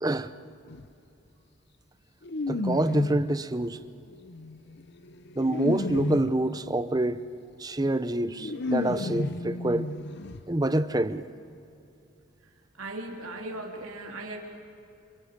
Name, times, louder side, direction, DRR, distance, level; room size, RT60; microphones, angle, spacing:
voice 1, 0.0-0.3 2.5-3.8 5.4-7.2 7.6-9.9 10.5-11.2, right 1 dB, 20° right, 0.6 m, -26 dB
sound 1, 0.7-0.9 2.2-3.4 4.1-6.5 7.8-7.9 8.2-10.4 10.7-10.8 11.1-11.2, left 2 dB, 50° left, 0.7 m, -32 dB
voice 2, 12.8-14.4, right 2 dB, 85° right, 3.3 m, -37 dB
29.0 x 28.5 x 5.3 m
head